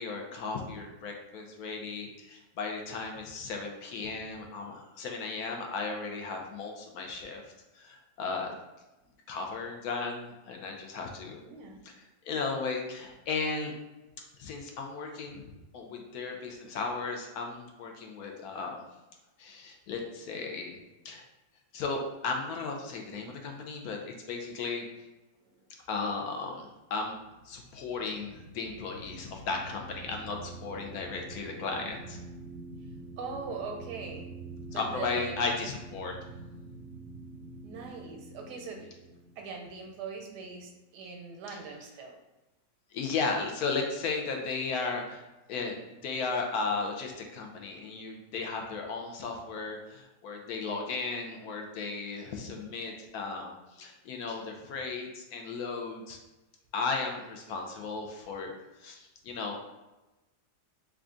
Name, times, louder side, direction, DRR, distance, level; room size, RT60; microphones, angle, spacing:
voice 1, 0.0-7.4 7.7-8.5 9.3-11.4 11.8-13.7 14.4-15.4 15.7-18.8 19.4-20.8 21.0-21.2 21.7-24.8 25.9-27.2 27.4-32.2 34.7-36.1 41.5-41.6 42.9-56.2 56.7-58.5 58.8-59.6, left 4 dB, 75° left, 2 dB, 1.0 m, -35 dB
voice 2, 11.4-11.8 31.8-31.9 33.2-34.3 34.7-35.5 37.6-38.9 39.4-42.1, right 4 dB, 90° right, 2 dB, 1.2 m, -41 dB
sound 1, 27.1-40.7, right 3 dB, 60° right, 0.7 m, -46 dB
3.4 x 2.4 x 3.7 m, 1.0 s
omnidirectional pair, 1.7 m